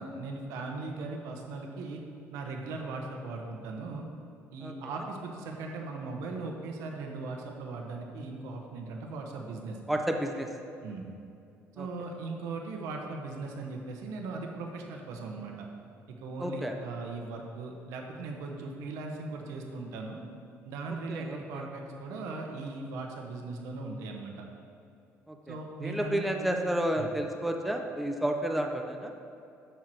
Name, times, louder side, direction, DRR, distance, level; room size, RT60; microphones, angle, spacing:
voice 1, 0.0-2.0 2.3-4.0 4.5-9.8 10.8-11.1 11.7-15.7 16.1-20.2 20.6-24.4 25.5-26.7 26.9-27.1, right 3 dB, 85° right, 2 dB, 1.2 m, -38 dB
voice 2, 9.9-10.5 11.8-11.9 16.4-16.7 21.1-21.6 25.3-25.5 25.8-29.1, right 1 dB, ahead, 3 dB, 0.5 m, -31 dB
12.5 x 4.7 x 4.5 m, 2.6 s
cardioid pair, 160°, 5 cm